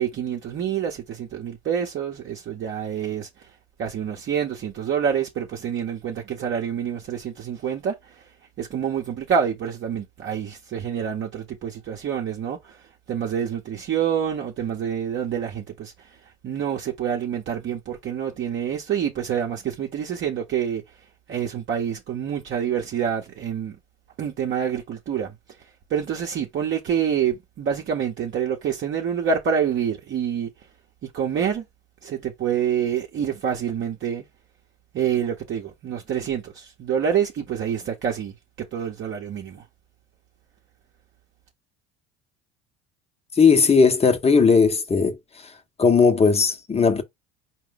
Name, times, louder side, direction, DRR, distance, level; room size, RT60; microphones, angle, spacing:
voice 1, 0.0-3.3 3.8-7.9 8.6-12.8 13.1-15.9 16.4-20.8 21.3-23.8 24.2-25.3 25.9-30.5 31.1-31.6 32.0-34.2 34.9-39.6, right 8 dB, 40° right, 0.9 m, -27 dB
voice 2, 43.4-45.1 45.8-47.0, left 5 dB, 20° left, 0.8 m, -17 dB
4.8 x 2.2 x 3.8 m
hypercardioid pair, 70°, 31 cm